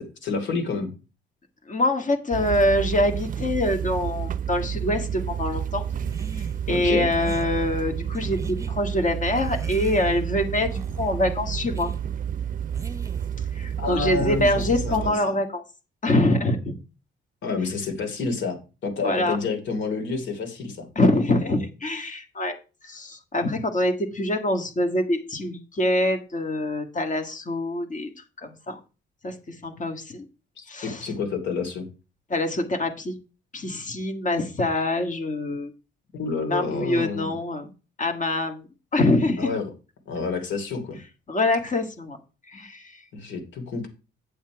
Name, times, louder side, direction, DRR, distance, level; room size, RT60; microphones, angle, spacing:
voice 1, 0.2-0.9 6.7-7.1 13.8-15.2 17.4-20.9 30.6-31.9 36.1-37.4 39.4-39.7 40.1-41.0 43.1-43.9, left 4 dB, 70° left, 3 dB, 2.9 m, -29 dB
voice 2, 1.7-5.9 6.3-11.9 13.5-15.6 16.0-16.7 19.0-19.4 20.9-22.6 22.8-28.8 29.2-30.2 30.7-31.0 32.3-33.1 33.5-35.7 36.5-37.7 38.0-39.5 41.3-42.2 42.5-43.0, left 1 dB, 40° left, 5 dB, 1.8 m, -25 dB
sound 1, 2.3-15.1, right 9 dB, 45° right, 0.5 m, -30 dB
sound 2, 6.0-6.6 7.1-7.5 8.1-8.7 9.3-10.3 10.7-11.1 11.7-12.0 12.7-13.4, right 3 dB, 15° right, 0.8 m, -39 dB
8.4 x 7.1 x 4.7 m, 0.32 s
cardioid pair, 90°, 20 cm